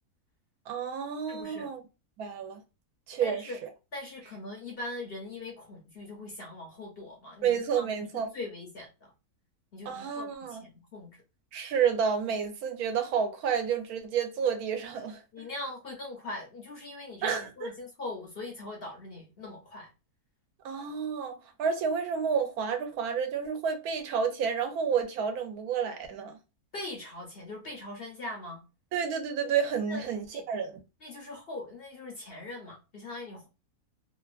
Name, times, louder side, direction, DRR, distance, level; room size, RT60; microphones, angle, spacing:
voice 1, 0.7-1.8 2.2-2.6 3.1-3.7 7.4-8.3 9.8-10.6 11.5-15.2 17.2-17.7 20.6-26.4 28.9-30.8, right 7 dB, 75° right, 1.1 m, -30 dB
voice 2, 1.3-1.7 3.2-3.6 3.9-8.1 8.3-9.1 9.7-11.1 15.3-19.9 26.7-28.6 29.9-30.1 30.3-30.4 31.0-33.5, left 2 dB, 55° left, 0.7 m, -41 dB
2.8 x 2.2 x 2.3 m
omnidirectional pair, 1.6 m